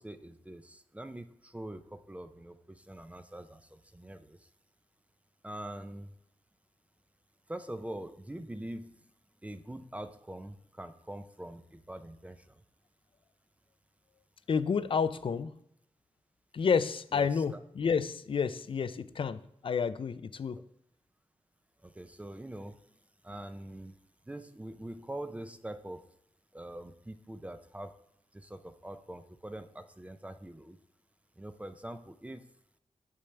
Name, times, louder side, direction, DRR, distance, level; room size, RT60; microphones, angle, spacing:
voice 1, 0.0-4.5 5.4-6.1 7.5-9.0 9.4-12.6 17.1-17.6 21.8-23.0 23.2-24.0 24.2-26.1 26.5-27.9 28.3-30.8 31.4-32.5, right 1 dB, 10° right, 9 dB, 0.5 m, -44 dB
voice 2, 14.5-15.6 16.5-20.6, left 6 dB, 50° left, 14 dB, 0.4 m, -30 dB
8.5 x 7.2 x 3.3 m, 0.76 s
wide cardioid pair, 110°, 11 cm